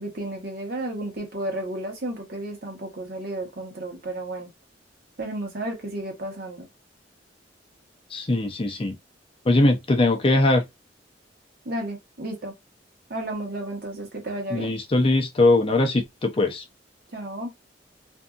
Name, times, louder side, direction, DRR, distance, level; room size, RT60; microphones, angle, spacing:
voice 1, 0.0-4.5 5.2-6.7 11.6-12.5 13.1-14.7 17.1-17.5, right 1 dB, 55° right, 1.0 m, -32 dB
voice 2, 8.1-9.0 9.4-10.6 14.5-16.6, left 2 dB, 30° left, 0.5 m, -21 dB
2.7 x 2.5 x 2.3 m
head